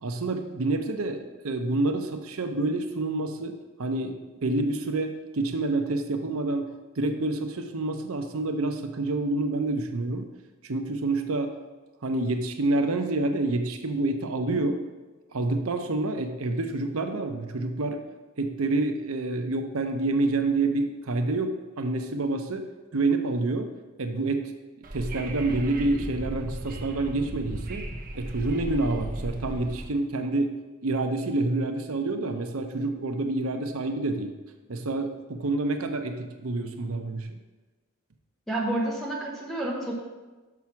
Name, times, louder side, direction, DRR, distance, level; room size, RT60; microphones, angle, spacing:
voice 1, 0.0-10.3 10.6-11.6 12.0-14.8 15.3-18.0 18.4-23.7 24.0-24.5 24.9-27.9 28.1-30.5 30.8-34.3 34.7-37.3, right 2 dB, 85° right, 6 dB, 0.8 m, -28 dB
Wind / Subway metro underground, 24.8-29.8, right 1 dB, 40° right, 0.8 m, -36 dB
voice 2, 38.5-39.9, right 1 dB, ahead, -3 dB, 1.2 m, -29 dB
6.1 x 6.0 x 5.8 m, 1.2 s
head